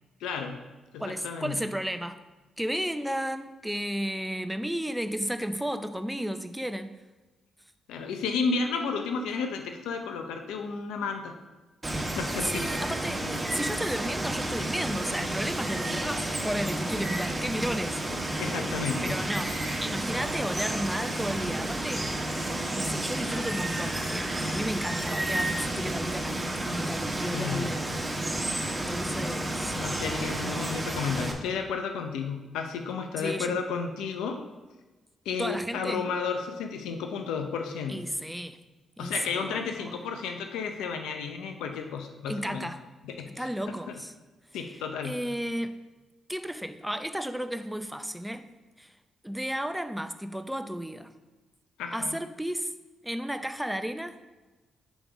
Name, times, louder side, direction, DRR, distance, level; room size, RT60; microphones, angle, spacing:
voice 1, 0.2-0.6 0.9-1.6 7.9-11.3 12.2-12.7 18.4-19.2 27.3-27.7 29.7-34.4 35.3-38.0 39.0-42.7 43.0-43.5 44.5-45.2 51.8-52.2, left 5 dB, 85° left, 5 dB, 0.5 m, -32 dB
voice 2, 1.0-2.2 2.6-6.9 12.4-18.0 19.0-22.1 22.7-27.8 28.7-29.8 30.4-30.8 33.2-33.6 35.4-36.0 37.9-38.6 39.0-40.0 42.3-42.9 43.4-44.1 45.0-45.8 46.3-48.5 48.8-48.9 49.2-51.1 51.9-52.7 53.0-54.2, equal, 5° right, 9 dB, 0.5 m, -33 dB
Water, 11.8-31.3, right 1 dB, 20° right, 1.2 m, -31 dB
7.1 x 3.4 x 4.9 m, 1.2 s
supercardioid pair, 55°, 0 cm